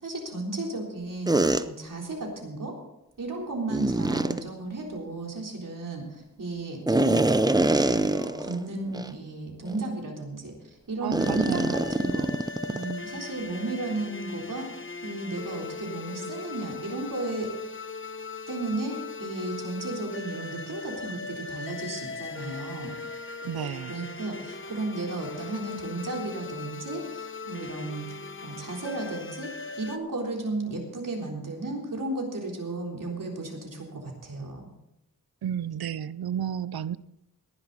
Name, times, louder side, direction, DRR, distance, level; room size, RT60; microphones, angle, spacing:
voice 1, 0.0-2.7 3.2-10.5 10.9-14.7 15.0-17.5 18.5-22.9 23.9-29.5 29.8-34.7, right 2 dB, 60° right, -1 dB, 3.8 m, -34 dB
sound 1, 1.3-1.6 3.7-4.4 6.9-8.6 8.9-9.1 9.7-9.8 11.1-12.9, right 2 dB, 10° right, 0.6 m, -24 dB
voice 2, 11.0-11.7 23.4-24.0 35.4-37.0, right 9 dB, 85° right, 18 dB, 0.6 m, -32 dB
sound 2, 11.2-30.0, left 4 dB, 35° left, 0.9 m, -39 dB
18.5 x 11.0 x 4.1 m, 0.88 s
wide cardioid pair, 85°, 36 cm